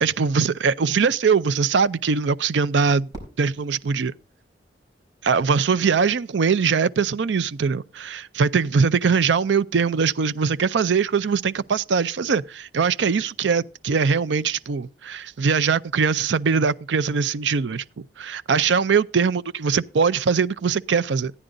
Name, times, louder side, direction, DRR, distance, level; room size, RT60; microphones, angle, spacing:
voice 1, 0.0-3.1 3.4-4.1 5.2-21.3, right 5 dB, 85° right, 0.5 m, -22 dB
Fireworks, 3.1-5.3, right 1 dB, 25° right, 4.5 m, -45 dB
15.0 x 9.8 x 3.8 m
head